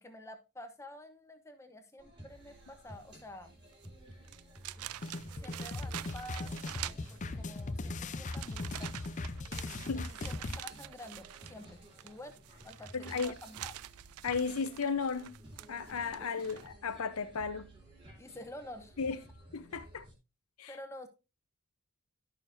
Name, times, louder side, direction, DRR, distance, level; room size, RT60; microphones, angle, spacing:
voice 1, 0.0-3.5 5.3-8.9 9.9-12.4 12.6-13.7 18.2-19.0 20.7-21.1, left 1 dB, 15° left, 0.9 m, -49 dB
sound 1, 2.0-20.1, equal, 25° right, 2.8 m, -53 dB
sound 2, 3.7-3.9 4.2-7.6 8.2-16.7, right 14 dB, 80° right, 0.3 m, -46 dB
sound 3, 5.0-10.6, left 2 dB, 35° left, 0.5 m, -39 dB
voice 2, 12.9-13.3 14.2-15.4 15.7-17.7 19.0-19.2 19.5-20.1 20.6-20.7, left 5 dB, 75° left, 0.7 m, -34 dB
11.5 x 6.5 x 2.6 m
head